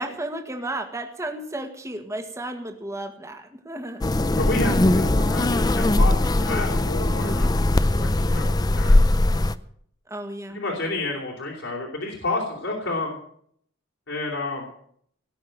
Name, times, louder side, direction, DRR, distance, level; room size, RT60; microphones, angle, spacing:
voice 1, 0.0-4.0 10.1-10.6, right 1 dB, 15° right, 5 dB, 1.7 m, -33 dB
sound 1, 4.0-9.6, left 1 dB, 20° left, 0.5 m, -20 dB
voice 2, 4.4-7.5 8.0-9.0 9.3-9.4 10.5-13.2 14.1-14.7, left 2 dB, 75° left, -2 dB, 3.3 m, -30 dB
19.0 x 6.4 x 9.0 m, 0.65 s
head